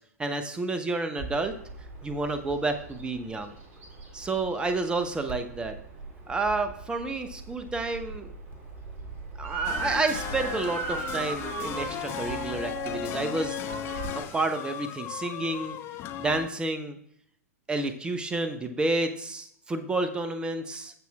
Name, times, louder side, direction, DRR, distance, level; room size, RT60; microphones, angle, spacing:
voice 1, 0.2-1.6 2.0-3.6 4.1-5.8 6.3-8.3 9.4-13.6 14.3-15.8 16.2-17.0 17.7-20.9, right 2 dB, 10° right, 8 dB, 0.8 m, -30 dB
Bird vocalization bird call bird song, 1.2-14.1, right 3 dB, 25° right, 2.1 m, -43 dB
Motor vehicle (road) / Siren, 9.4-14.7, right 6 dB, 45° right, 1.0 m, -36 dB
sound 1, 9.6-16.5, left 10 dB, 30° left, 0.5 m, -36 dB
14.5 x 5.8 x 2.3 m, 0.70 s
figure-of-eight pair, 105°, 8 cm